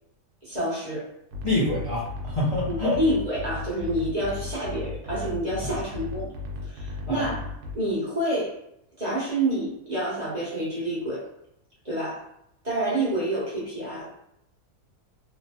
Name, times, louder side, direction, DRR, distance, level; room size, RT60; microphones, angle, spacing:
voice 1, 0.4-1.1 2.6-6.3 6.6-7.4 7.7-8.5 9.0-11.2 11.8-12.2 12.6-14.1, right 1 dB, 35° right, -8 dB, 0.8 m, -28 dB
sound 1, 1.3-7.8, left 3 dB, 75° right, 1.1 m, -36 dB
voice 2, 1.4-3.0 5.6-5.8 7.1-7.3, left 2 dB, 55° left, -9 dB, 0.3 m, -26 dB
3.0 x 2.1 x 2.8 m, 0.77 s
omnidirectional pair, 1.7 m